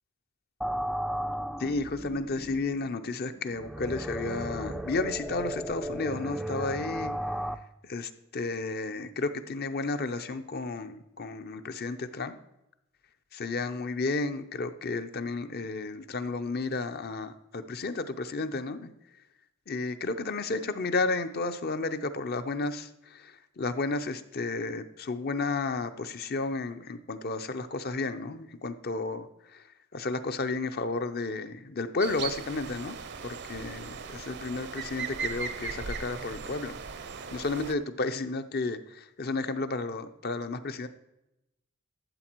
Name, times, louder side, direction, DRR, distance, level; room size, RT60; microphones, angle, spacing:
sound 1, 0.6-7.6, equal, ahead, 0.4 m, -35 dB
voice 1, 1.6-7.1 7.9-12.4 13.3-18.9 19.7-29.3 29.5-29.6 29.9-33.0 33.2-36.8 37.3-40.9, left 3 dB, 50° left, 9 dB, 0.7 m, -32 dB
sound 2, 32.0-37.7, right 5 dB, 55° right, 0.6 m, -38 dB
13.0 x 7.4 x 4.6 m, 0.88 s
head